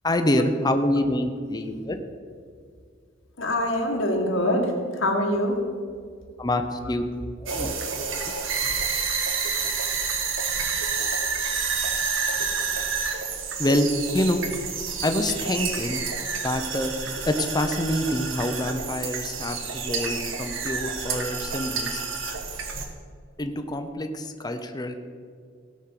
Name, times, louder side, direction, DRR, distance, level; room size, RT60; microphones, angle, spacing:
voice 1, 0.0-2.0 6.4-7.0 7.4-8.4 13.6-13.9 14.1-14.4 15.0-16.0 16.4-16.9 17.3-22.0 23.4-25.0, left 1 dB, 20° left, 6 dB, 0.7 m, -26 dB
voice 2, 3.4-5.6, left 1 dB, 85° left, 0 dB, 2.0 m, -24 dB
sound 1, 7.5-22.9, right 5 dB, 90° right, 1.4 m, -29 dB
17.0 x 6.3 x 5.9 m, 2.1 s
head